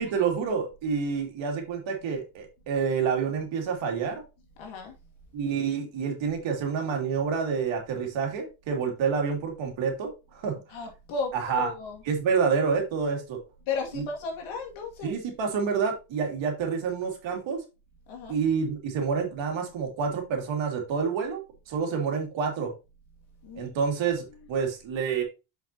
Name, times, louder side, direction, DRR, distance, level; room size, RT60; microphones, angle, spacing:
voice 1, 0.0-4.2 5.3-10.5 11.3-11.7 12.0-13.4 13.9-14.0 15.0-17.6 18.3-22.7 23.5-25.2, right 6 dB, 70° right, 2 dB, 2.9 m, -28 dB
voice 2, 4.6-4.9 9.0-9.1 10.7-12.0 13.6-15.1 18.1-18.4 23.4-23.7, left 4 dB, 75° left, 2 dB, 2.4 m, -35 dB
7.2 x 6.1 x 2.9 m, 0.28 s
supercardioid pair, 80°, 47 cm